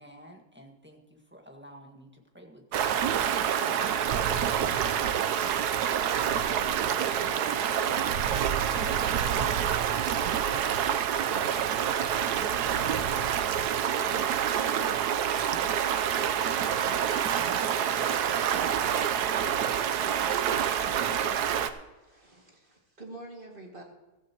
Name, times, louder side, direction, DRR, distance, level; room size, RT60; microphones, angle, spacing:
voice 1, 0.0-3.3 3.7-4.6, equal, 5° right, 1 dB, 1.5 m, -50 dB
Stream, 2.7-21.7, right 9 dB, 80° right, 1.3 m, -27 dB
voice 2, 7.2-9.2 9.5-12.9, left 6 dB, 70° left, 8 dB, 1.3 m, -57 dB
sound 1, 10.7-11.0 11.3-11.7 12.0-12.1 12.7-12.8 13.4-13.7 14.0-14.3 14.7-14.8 15.4-15.5 16.0-16.4 16.7-17.0 17.4-17.5 18.0-18.2 18.7-19.0 19.4-19.7 20.0-20.1 20.7-20.9, right 1 dB, 55° right, 4.6 m, -48 dB
voice 3, 22.0-23.8, right 2 dB, 30° right, 0 dB, 2.4 m, -46 dB
15.0 x 15.0 x 3.0 m, 1.1 s
omnidirectional pair, 1.7 m